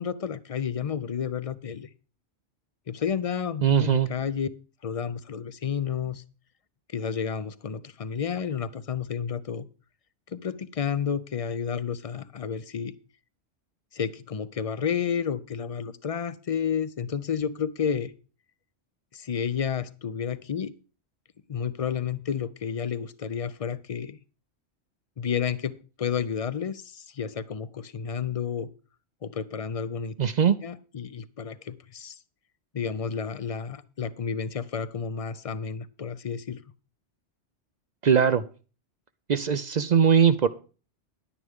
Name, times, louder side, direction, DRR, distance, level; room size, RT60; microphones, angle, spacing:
voice 1, 0.0-1.9 2.9-4.5 4.8-6.2 6.9-9.7 10.3-12.9 13.9-18.1 19.1-20.7 21.5-24.2 25.2-28.7 29.2-30.1 30.6-32.2 32.7-36.6, left 7 dB, 45° left, 15 dB, 0.5 m, -31 dB
voice 2, 3.6-4.1 30.2-30.6 38.0-38.4 39.3-40.5, right 7 dB, 50° right, 13 dB, 0.5 m, -20 dB
10.5 x 9.9 x 3.6 m, 0.36 s
omnidirectional pair, 1.2 m